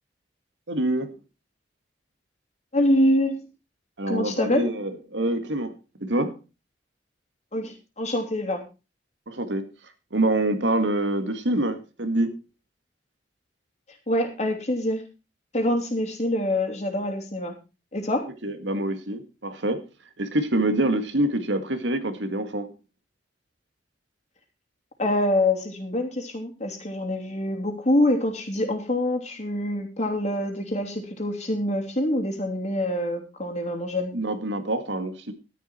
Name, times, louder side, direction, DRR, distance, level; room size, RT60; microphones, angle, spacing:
voice 1, 0.7-1.1 4.0-5.7 6.0-6.3 9.3-9.7 10.1-12.3 18.4-19.8 20.2-22.7 34.1-35.3, right 1 dB, 85° right, 2.0 m, -26 dB
voice 2, 2.7-3.4 4.1-4.7 7.5-8.6 14.1-15.0 15.5-17.5 17.9-18.3 25.0-34.1, left 1 dB, 40° left, 3.0 m, -25 dB
12.5 x 11.0 x 4.5 m
head